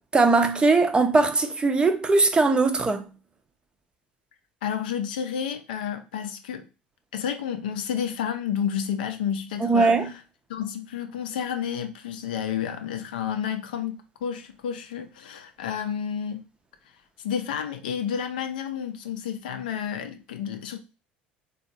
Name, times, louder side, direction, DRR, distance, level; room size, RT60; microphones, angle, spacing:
voice 1, 0.1-3.0 9.6-10.1, right 3 dB, 20° right, 0.5 m, -20 dB
voice 2, 4.6-6.6 7.1-10.2 10.5-16.4 17.2-20.8, left 8 dB, 70° left, 0.4 m, -30 dB
3.4 x 2.3 x 2.6 m
figure-of-eight pair, 65°, 5 cm